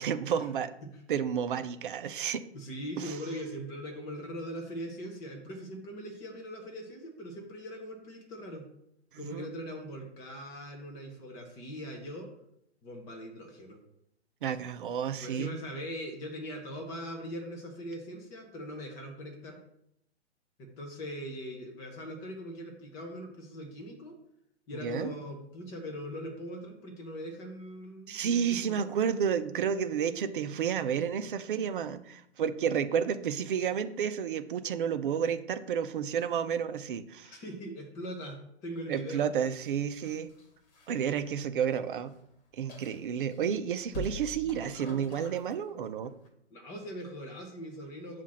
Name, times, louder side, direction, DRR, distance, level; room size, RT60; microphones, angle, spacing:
voice 1, 0.0-0.7 1.1-2.4 3.0-3.2 9.1-9.5 14.4-15.5 24.8-25.1 28.1-37.4 38.9-40.3 40.9-42.1 42.5-46.1, right 8 dB, 50° right, 11 dB, 0.5 m, -31 dB
voice 2, 2.5-8.7 9.2-12.3 12.8-13.8 15.2-19.6 20.6-24.2 24.7-28.6 37.2-39.3 46.5-48.2, equal, 10° left, 4 dB, 0.4 m, -41 dB
sound 1, 39.6-41.9 42.1-42.2 42.7-43.4 43.9-45.7 46.0-46.3, left 1 dB, 35° left, 1.3 m, -44 dB
7.1 x 2.5 x 5.7 m, 0.75 s
hypercardioid pair, 130°, 35 cm